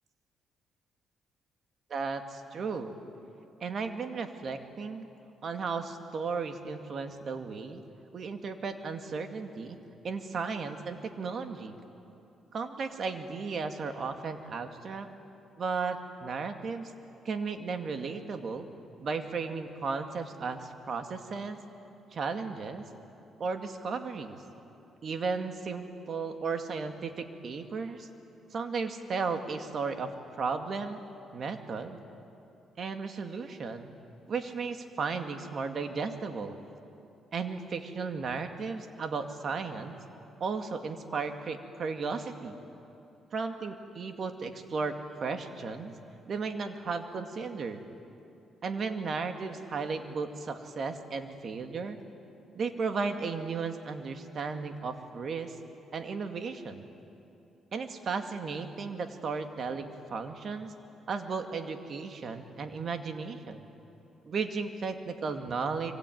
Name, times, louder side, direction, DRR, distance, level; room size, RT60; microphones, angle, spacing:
voice 1, 1.9-2.9 3.6-5.1 5.4-7.8 8.1-9.8 10.0-11.8 12.5-15.1 15.6-16.9 17.2-18.7 19.0-21.6 22.1-22.9 23.4-24.4 25.0-28.1 28.5-31.0 31.3-32.0 32.8-33.9 34.3-36.6 37.3-40.0 40.4-42.6 43.3-46.0 46.3-47.8 48.6-52.0 52.5-55.6 55.9-56.9 57.7-60.7 61.1-63.6 64.2-65.9, right 4 dB, 50° right, 6 dB, 2.3 m, -35 dB
24.5 x 24.5 x 9.5 m, 2.8 s
cardioid pair, 90°, 0 cm